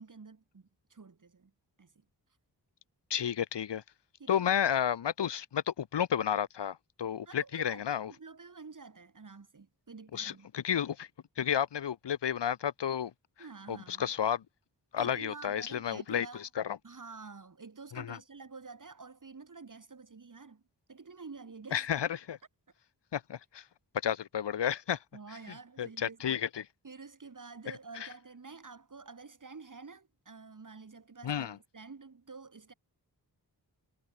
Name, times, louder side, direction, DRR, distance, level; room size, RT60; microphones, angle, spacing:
voice 1, 0.0-1.5 1.8-1.9 4.2-4.5 7.3-10.5 13.4-14.1 15.0-16.5 16.8-20.6 20.9-21.9 25.1-26.4 26.8-32.7, right 4 dB, 50° right, 2.3 m, -49 dB
voice 2, 3.1-3.8 4.3-8.1 10.1-11.1 11.4-13.1 13.7-14.4 14.9-16.8 17.9-18.2 21.7-22.4 23.1-23.6 24.0-25.0 25.8-26.6 28.0-28.1 31.2-31.6, left 9 dB, 80° left, 0.9 m, -32 dB
wide cardioid pair, 90°, 41 cm